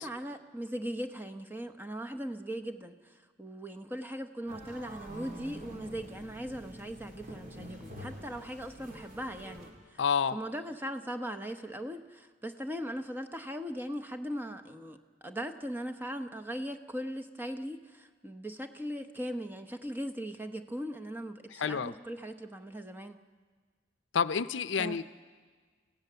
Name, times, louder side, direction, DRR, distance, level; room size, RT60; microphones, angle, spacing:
voice 1, 0.0-10.0 10.3-23.2 24.8-25.0, equal, 10° right, 7 dB, 0.9 m, -39 dB
sound 1, 4.5-9.7, equal, 45° right, 3.6 m, -47 dB
voice 2, 10.0-10.4 21.5-21.9 24.1-25.0, left 6 dB, 80° left, 14 dB, 0.6 m, -29 dB
30.0 x 16.0 x 6.9 m, 1.5 s
head